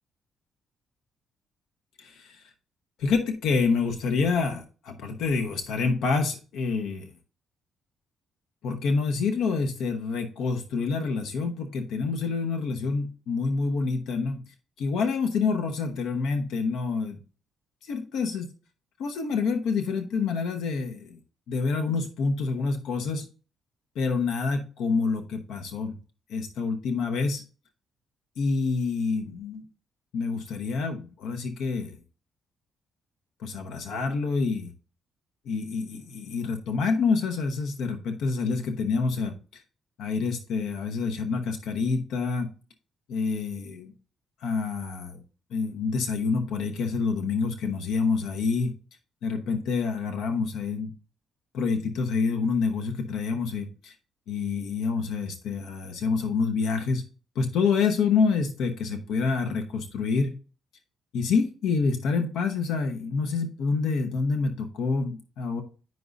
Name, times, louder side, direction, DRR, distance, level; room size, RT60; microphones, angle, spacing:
voice 1, 2.0-2.4 3.0-7.1 8.6-14.4 14.8-17.2 17.8-18.5 19.0-21.2 21.5-23.2 23.9-25.9 26.3-27.4 28.4-29.6 30.1-32.0 33.4-34.7 35.5-39.3 40.0-42.5 43.1-43.9 44.4-45.2 45.5-48.7 49.2-50.9 51.5-53.9 54.3-57.0 57.3-60.3 61.1-65.6, left 4 dB, 80° left, 5 dB, 1.0 m, -27 dB
9.3 x 5.3 x 2.5 m, 0.36 s
cardioid pair, 90°, 0 cm